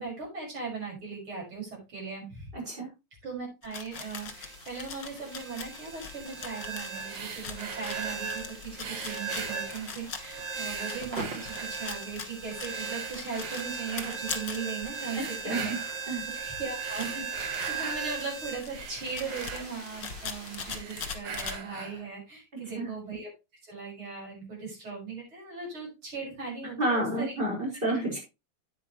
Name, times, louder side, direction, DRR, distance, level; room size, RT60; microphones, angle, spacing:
voice 1, 0.0-2.5 3.2-15.7 16.3-23.3 23.6-27.3, right 5 dB, 75° right, -2 dB, 6.7 m, -38 dB
voice 2, 2.5-2.9 15.2-15.7 16.1-16.2 22.7-22.9 26.8-28.2, right 1 dB, 25° right, -2 dB, 5.2 m, -30 dB
sound 1, 3.6-15.4 15.9-16.0 16.2-21.6, left 6 dB, 55° left, 2.2 m, -42 dB
sound 2, 3.9-20.8, right 4 dB, 55° right, 3.4 m, -39 dB
sound 3, 7.0-8.3 8.8-10.2 10.5-12.1 12.6-14.2 14.9-16.1 16.7-18.1 18.4-20.3 20.6-22.1, right 6 dB, 90° right, 2.3 m, -41 dB
9.8 x 9.3 x 3.1 m, 0.25 s
omnidirectional pair, 2.4 m